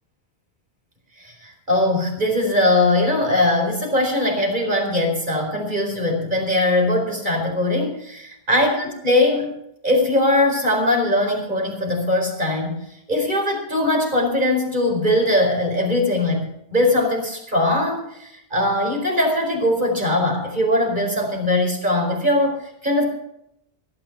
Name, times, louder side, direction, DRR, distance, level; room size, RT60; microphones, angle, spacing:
voice 1, 1.2-9.5 9.8-12.8 13.1-23.0, left 1 dB, 45° right, 1 dB, 4.8 m, -21 dB
17.0 x 10.5 x 5.9 m, 0.78 s
omnidirectional pair, 1.1 m